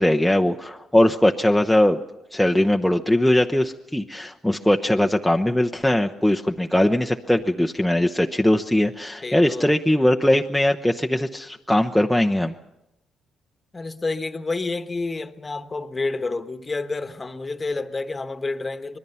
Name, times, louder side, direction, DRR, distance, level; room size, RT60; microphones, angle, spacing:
voice 1, 0.0-2.0 2.3-12.6, left 1 dB, 5° left, 0.8 m, -20 dB
voice 2, 9.2-9.7 13.7-19.0, left 3 dB, 25° left, 1.3 m, -29 dB
25.5 x 20.5 x 5.7 m
cardioid pair, 90°, 0 cm